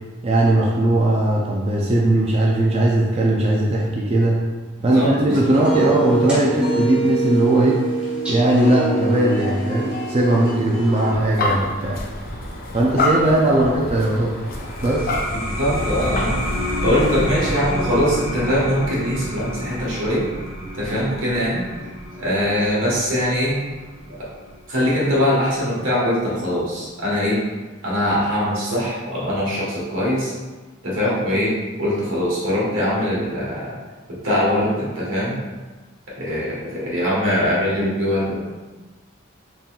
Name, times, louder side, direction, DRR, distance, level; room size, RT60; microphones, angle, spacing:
voice 1, 0.2-4.4 4.8-7.8 8.3-12.0 12.7-14.3 14.8-15.1, right 1 dB, 30° right, -3 dB, 0.4 m, -19 dB
voice 2, 4.9-5.4 5.7-5.8 13.5-13.6 15.4-16.3 16.8-20.3 20.7-21.7 22.2-23.6 24.2-24.3 24.7-27.4 27.8-30.3 30.8-33.8 34.1-35.4 36.1-38.4, equal, 80° right, -6 dB, 1.4 m, -22 dB
sound 1, 5.3-11.1, right 2 dB, 5° right, 1.1 m, -24 dB
sound 2, 11.1-17.3, left 1 dB, 45° left, 0.6 m, -27 dB
sound 3, 14.4-25.6, equal, 65° left, 1.1 m, -30 dB
4.0 x 3.6 x 2.3 m, 1.3 s
head